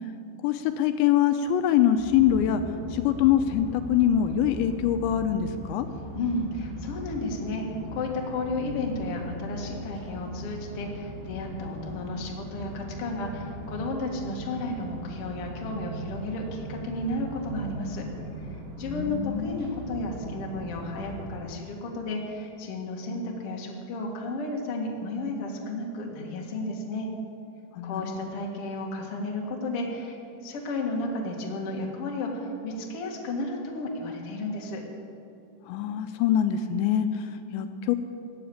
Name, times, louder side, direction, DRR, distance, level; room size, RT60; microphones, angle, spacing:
voice 1, 0.4-2.6 2.9-5.9 18.9-19.6 27.7-28.1 35.7-38.0, left 10 dB, 85° left, 8 dB, 2.8 m, -24 dB
sound 1, 2.0-21.4, equal, 75° right, 5.4 m, -39 dB
voice 2, 6.1-7.6 7.9-18.0 18.5-27.1 27.8-30.2 30.4-34.8, left 2 dB, 50° left, -1 dB, 1.9 m, -33 dB
15.0 x 8.0 x 8.5 m, 2.7 s
omnidirectional pair, 5.2 m